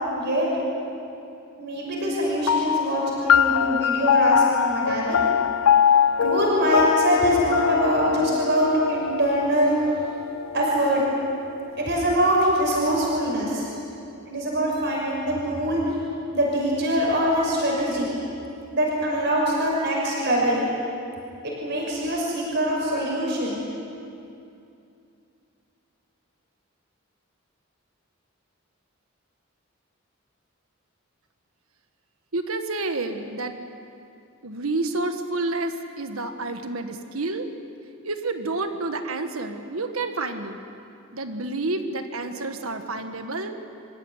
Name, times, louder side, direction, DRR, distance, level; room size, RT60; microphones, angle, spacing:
voice 1, 0.1-0.5 1.6-5.2 6.2-9.8 10.5-11.0 11.8-13.7 14.3-15.8 16.3-18.1 18.7-20.6 21.4-23.6, right 1 dB, 55° right, -3 dB, 6.0 m, -23 dB
sound 1, 2.5-11.3, left 8 dB, 80° left, 0.5 m, -23 dB
voice 2, 32.3-33.6 34.4-37.5 38.0-40.6 41.1-43.6, right 2 dB, 85° right, 7 dB, 1.6 m, -29 dB
27.5 x 15.5 x 9.9 m, 2.6 s
head